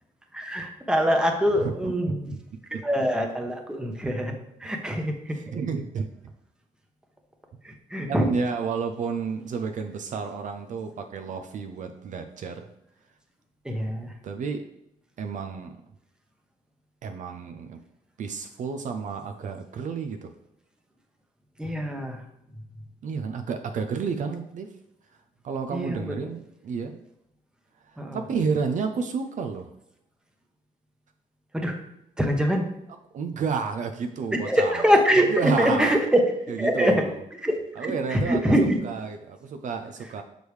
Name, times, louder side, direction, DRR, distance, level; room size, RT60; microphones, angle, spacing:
voice 1, 0.3-2.3 2.7-4.3 4.6-5.4 7.6-8.3 13.6-14.1 21.6-22.2 25.7-26.2 28.0-28.2 31.5-31.8 32.2-32.7 34.3-36.2 36.6-37.0 37.4-38.8, equal, 5° right, 2 dB, 1.0 m, -24 dB
voice 2, 1.6-2.1 4.0-4.1 5.3-6.1 8.1-12.7 14.2-14.6 15.2-15.8 17.0-17.8 18.2-20.3 23.0-24.7 25.4-27.0 27.8-29.7 33.1-34.8 35.3-36.0 36.5-37.1 37.8-40.2, right 5 dB, 55° right, 6 dB, 0.5 m, -31 dB
6.3 x 5.1 x 3.2 m, 0.79 s
cardioid pair, 110°, 15 cm